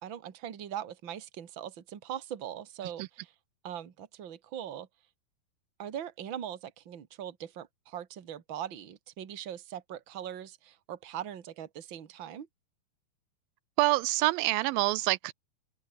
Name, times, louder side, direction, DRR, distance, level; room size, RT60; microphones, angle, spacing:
voice 1, 0.0-3.3 3.6-4.9 5.8-12.5, right 10 dB, 40° right, 2.2 m, -41 dB
voice 2, 13.8-15.3, right 19 dB, 85° right, 2.3 m, -26 dB
omnidirectional pair, 4.1 m